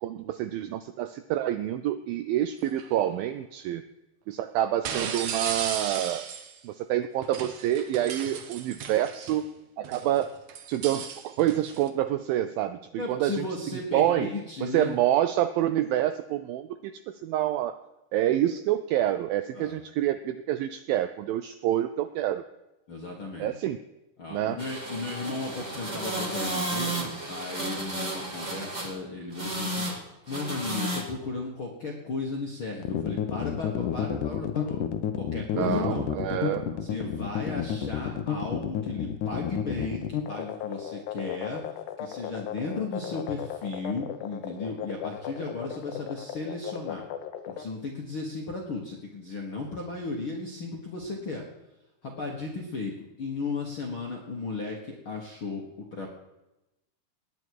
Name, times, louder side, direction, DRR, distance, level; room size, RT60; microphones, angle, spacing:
voice 1, 0.0-3.8 4.3-6.3 6.6-9.4 9.8-10.3 10.7-13.5 13.9-14.3 14.6-17.8 18.1-22.4 23.4-23.8 24.3-24.6 35.6-36.7, right 12 dB, 85° right, 10 dB, 2.1 m, -27 dB
sound 1, 2.7-2.9 4.8-6.6 7.2-9.4 9.8-11.9, right 7 dB, 70° right, 1.8 m, -35 dB
voice 2, 13.0-15.0 19.5-19.8 22.9-23.5 24.2-34.8 35.1-36.1 36.8-47.0 47.4-51.4 52.0-56.1, left 3 dB, 60° left, 0 dB, 1.3 m, -35 dB
sound 2, 24.6-29.0 29.3-30.0 30.3-31.0, right 1 dB, 35° right, 0.6 m, -33 dB
sound 3, 32.8-47.6, left 9 dB, 80° left, 1.8 m, -32 dB
19.0 x 9.8 x 4.7 m, 0.97 s
omnidirectional pair, 4.7 m